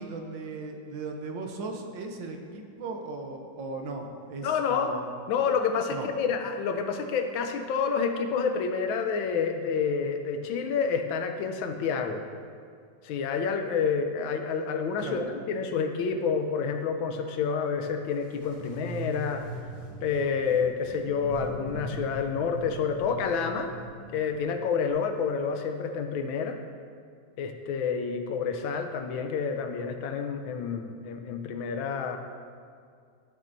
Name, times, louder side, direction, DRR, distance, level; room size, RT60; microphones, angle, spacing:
voice 1, 0.0-5.1 5.9-6.1 15.0-15.3, right 3 dB, 75° right, 3 dB, 1.6 m, -37 dB
voice 2, 4.4-4.9 5.3-12.2 13.0-19.4 20.0-23.7 24.1-26.6 27.4-32.2, left 6 dB, 85° left, 6 dB, 1.5 m, -29 dB
sound 1, 18.1-24.9, right 1 dB, 10° left, 2.2 m, -40 dB
13.0 x 7.3 x 2.6 m, 2.2 s
omnidirectional pair, 2.1 m